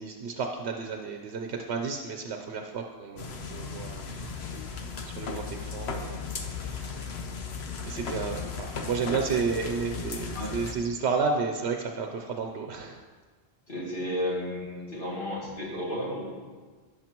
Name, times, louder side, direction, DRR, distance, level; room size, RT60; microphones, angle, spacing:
voice 1, 0.0-4.1 5.0-6.2 6.5-7.1 7.8-13.0, right 5 dB, 80° right, 3 dB, 1.0 m, -32 dB
sound 1, 3.2-10.7, left 5 dB, 75° left, 1.1 m, -36 dB
voice 2, 13.7-16.2, left 1 dB, 50° left, -6 dB, 2.7 m, -33 dB
17.0 x 6.5 x 3.0 m, 1.4 s
omnidirectional pair, 1.1 m